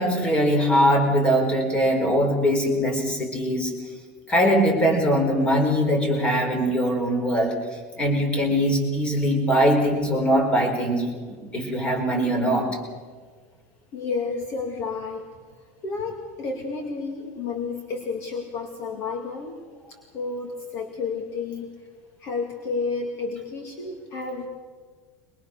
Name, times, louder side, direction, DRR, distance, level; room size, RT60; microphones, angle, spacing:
voice 1, 0.0-3.7 4.3-7.6 8.0-12.7, equal, 15° left, 2 dB, 4.5 m, -21 dB
voice 2, 13.9-15.2 15.8-19.6 20.1-21.7 22.2-24.5, left 4 dB, 35° left, 3 dB, 2.4 m, -31 dB
23.5 x 21.5 x 6.8 m, 1.5 s
supercardioid pair, 165°, 8 cm